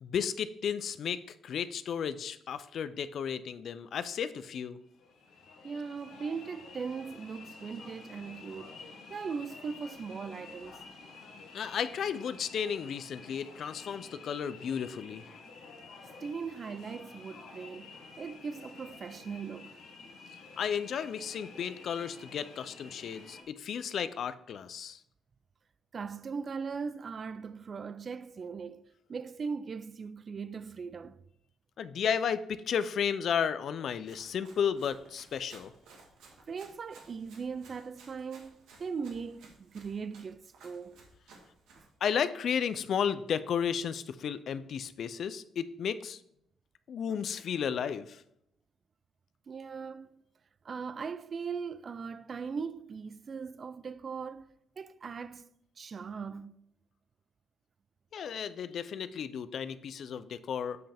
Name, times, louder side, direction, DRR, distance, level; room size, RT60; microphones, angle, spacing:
voice 1, 0.0-4.8 11.5-15.2 20.6-25.0 31.8-35.7 42.0-46.2 46.9-48.2 58.1-60.8, left 7 dB, 60° left, 0.4 m, -33 dB
sound 1, 4.8-23.4, left 4 dB, 80° left, 1.4 m, -50 dB
voice 2, 5.6-8.8 9.1-10.8 16.2-19.8 25.9-28.8 29.1-31.2 36.5-41.0 41.8-41.9 49.5-50.2 50.6-54.5 54.8-55.4 55.8-56.5, right 5 dB, 45° right, 0.4 m, -39 dB
Run, 34.0-41.9, right 3 dB, 85° right, 1.6 m, -58 dB
7.7 x 5.5 x 3.5 m
cardioid pair, 90°, 0 cm